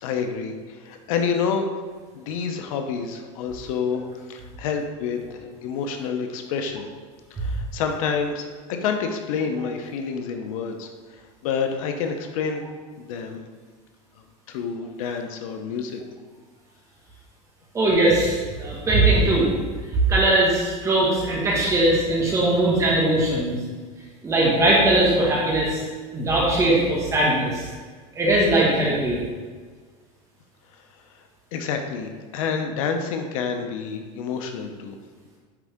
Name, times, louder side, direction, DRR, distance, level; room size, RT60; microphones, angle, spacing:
voice 1, 0.0-1.7 2.1-4.0 4.3-6.9 7.3-10.9 11.4-12.6 13.0-13.4 14.5-16.0 31.5-34.9, left 6 dB, 70° left, 5 dB, 0.9 m, -28 dB
voice 2, 17.7-19.5 20.1-23.6 24.2-25.8 26.1-27.7 28.1-29.2, right 1 dB, 15° right, -4 dB, 1.6 m, -20 dB
9.6 x 3.8 x 3.6 m, 1.5 s
supercardioid pair, 165°, 18 cm